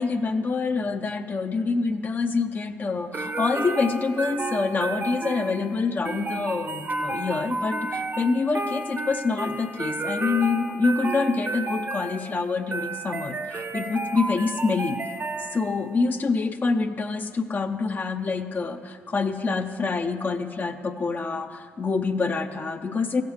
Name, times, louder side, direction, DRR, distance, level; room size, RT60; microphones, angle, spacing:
voice 1, 0.0-15.0 15.5-23.2, left 4 dB, 35° left, 6 dB, 0.7 m, -26 dB
sound 1, 3.1-15.9, right 2 dB, 35° right, 0.8 m, -32 dB
15.0 x 5.2 x 8.0 m, 2.1 s
supercardioid pair, 65°, 5 cm